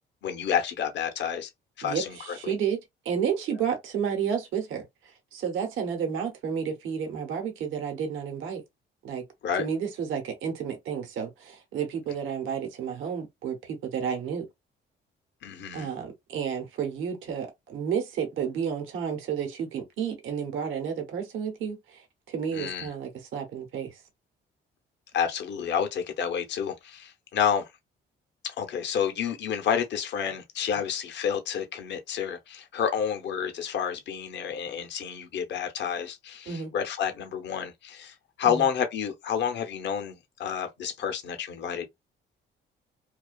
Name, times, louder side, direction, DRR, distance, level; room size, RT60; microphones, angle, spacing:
voice 1, 0.2-1.5 1.8-2.5 9.4-9.7 15.4-15.9 22.5-22.9 25.1-27.7 28.4-41.9, left 8 dB, 65° left, 0.6 m, -30 dB
voice 2, 1.8-2.8 3.0-4.9 5.3-8.6 9.0-9.2 9.6-14.4 15.7-24.0 36.5-36.7 38.4-38.7, right 7 dB, 85° right, 0.9 m, -31 dB
2.4 x 2.3 x 2.2 m
cardioid pair, 90°, 20 cm